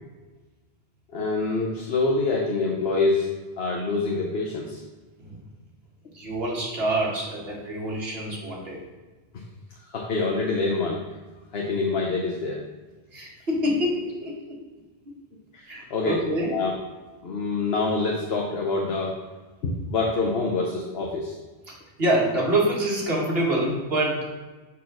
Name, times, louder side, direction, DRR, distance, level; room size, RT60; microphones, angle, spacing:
voice 1, 1.1-3.3 3.6-4.8 9.9-11.0 11.5-12.6 15.5-16.7 17.2-19.2 19.6-21.4, left 3 dB, 75° left, -1 dB, 1.1 m, -26 dB
voice 2, 6.1-8.8 13.1-14.6 15.7-16.5 21.7-24.2, right 1 dB, 70° right, -4 dB, 2.0 m, -26 dB
6.3 x 4.5 x 6.0 m, 1.3 s
omnidirectional pair, 1.0 m